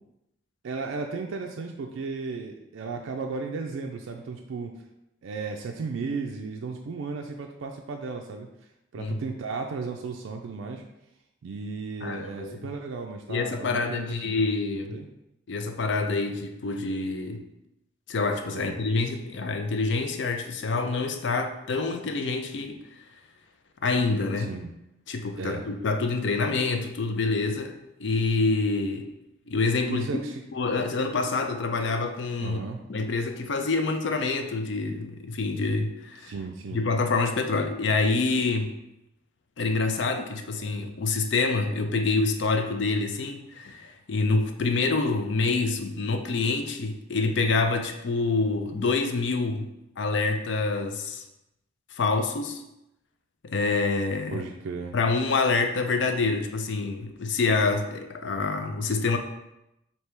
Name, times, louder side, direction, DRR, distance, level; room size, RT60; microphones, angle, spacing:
voice 1, 0.6-4.7 5.2-8.5 8.9-10.8 11.4-14.5 14.9-15.1 18.5-18.8 24.4-24.7 25.4-25.6 29.9-30.4 32.4-32.8 36.2-36.8 54.3-54.9, right 4 dB, 75° right, 2 dB, 0.3 m, -35 dB
voice 2, 12.0-12.6 13.3-15.0 15.5-17.4 18.1-22.8 23.8-24.5 25.1-27.7 28.0-29.1 29.5-30.1 30.5-32.6 32.9-36.3 36.7-38.7 39.6-49.7 50.0-51.2 51.9-52.6 53.4-54.5 54.9-59.2, left 3 dB, 60° left, 6 dB, 0.4 m, -26 dB
3.3 x 2.8 x 4.4 m, 0.88 s
head